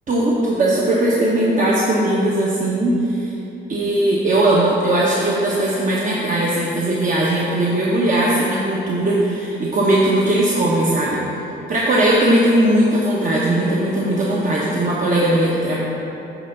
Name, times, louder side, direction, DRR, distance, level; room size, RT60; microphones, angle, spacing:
voice 1, 0.1-3.3 3.7-11.2 11.7-15.8, right 1 dB, 40° right, -5 dB, 1.1 m, -18 dB
9.2 x 3.4 x 6.7 m, 3.0 s
cardioid pair, 90°, 20 cm